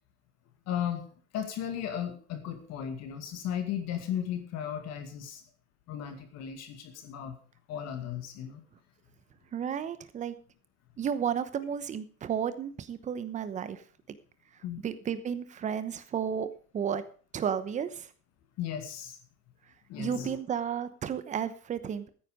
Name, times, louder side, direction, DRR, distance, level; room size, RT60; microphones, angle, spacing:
voice 1, 0.7-1.1 1.3-5.4 5.9-7.4 7.7-8.6 14.6-14.9 18.6-19.2 19.9-20.4, left 9 dB, 35° left, 6 dB, 2.2 m, -35 dB
voice 2, 9.5-10.3 11.0-13.8 14.8-16.5 16.7-17.0 17.3-18.1 20.0-22.1, right 8 dB, 15° right, 12 dB, 1.0 m, -32 dB
14.5 x 9.7 x 5.0 m, 0.41 s
supercardioid pair, 155°, 43 cm